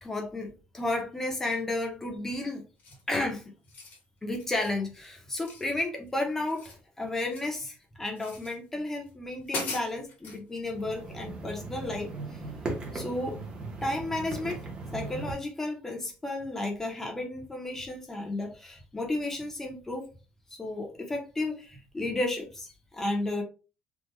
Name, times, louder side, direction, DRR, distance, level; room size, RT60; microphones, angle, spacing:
voice 1, 0.0-2.7 3.1-3.5 4.2-12.4 12.9-13.4 13.8-14.6 14.9-20.1 20.6-23.4, left 2 dB, 10° left, 0.8 m, -33 dB
sound 1, 2.8-3.2 3.6-4.0 4.4-4.8 5.4-6.1 6.4-7.6 8.2-8.6 9.1-9.2 9.5-10.4, left 3 dB, 50° left, 1.1 m, -40 dB
sound 2, 10.7-15.3, right 3 dB, 25° right, 0.9 m, -38 dB
3.6 x 2.3 x 3.1 m
cardioid pair, 175°, 4 cm